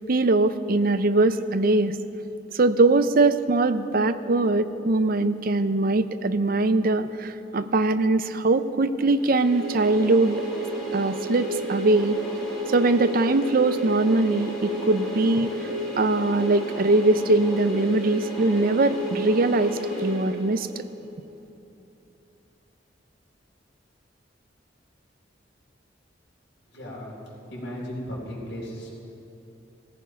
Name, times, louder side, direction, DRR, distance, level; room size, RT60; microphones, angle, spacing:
voice 1, 0.1-2.0 2.5-10.4 10.9-12.2 12.7-15.5 16.0-20.9, right 2 dB, 50° right, 11 dB, 0.6 m, -22 dB
sound 1, 9.1-20.9, right 1 dB, 5° left, 4.2 m, -32 dB
voice 2, 26.7-27.2 27.5-28.9, equal, 80° left, -6 dB, 3.8 m, -35 dB
17.0 x 14.5 x 5.2 m, 2.9 s
head